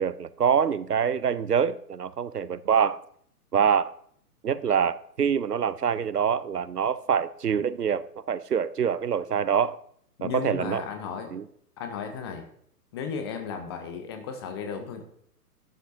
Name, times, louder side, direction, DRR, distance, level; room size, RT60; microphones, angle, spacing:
voice 1, 0.0-3.0 3.5-3.9 4.4-9.8 10.2-10.8 11.3-11.4, right 7 dB, 75° right, 0.7 m, -25 dB
voice 2, 10.2-11.4 11.8-12.5 12.9-15.0, left 6 dB, 15° left, 0.7 m, -35 dB
12.0 x 11.0 x 2.6 m
figure-of-eight pair, 125°, 47 cm